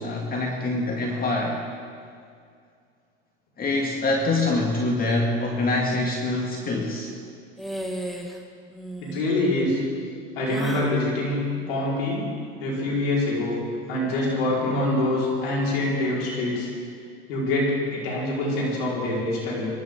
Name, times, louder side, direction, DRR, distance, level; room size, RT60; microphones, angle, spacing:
voice 1, 0.0-1.6 3.6-7.1, left 2 dB, 30° left, 0 dB, 2.2 m, -25 dB
sound 1, 7.6-8.4 8.7-9.2 10.5-11.0, right 1 dB, ahead, 2.1 m, -34 dB
voice 2, 9.0-9.8 10.3-12.2 12.6-13.6 13.9-16.7 17.3-19.7, left 1 dB, 85° left, -5 dB, 5.2 m, -25 dB
25.0 x 14.0 x 4.0 m, 2.3 s
supercardioid pair, 95°, 29 cm